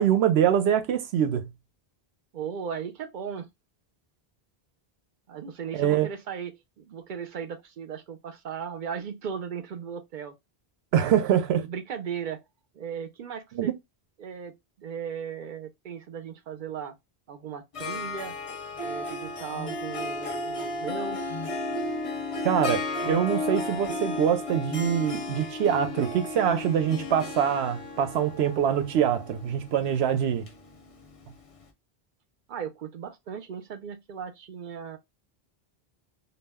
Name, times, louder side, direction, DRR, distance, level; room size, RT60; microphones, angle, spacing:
voice 1, 0.0-1.5 5.7-6.1 10.9-11.7 13.5-13.7 22.4-30.5, right 9 dB, 90° right, 0.8 m, -24 dB
voice 2, 2.3-3.5 5.3-10.3 10.9-11.2 11.6-12.4 12.7-13.7 14.2-16.9 17.3-18.3 18.8-21.2 32.5-35.0, right 7 dB, 60° right, 0.6 m, -37 dB
Harp, 17.7-31.3, left 2 dB, 40° left, 0.6 m, -34 dB
sound 1, 19.5-19.8 21.3-21.6 23.0-23.3 24.6-24.9, left 1 dB, 85° left, 1.0 m, -40 dB
2.3 x 2.1 x 3.4 m
omnidirectional pair, 1.0 m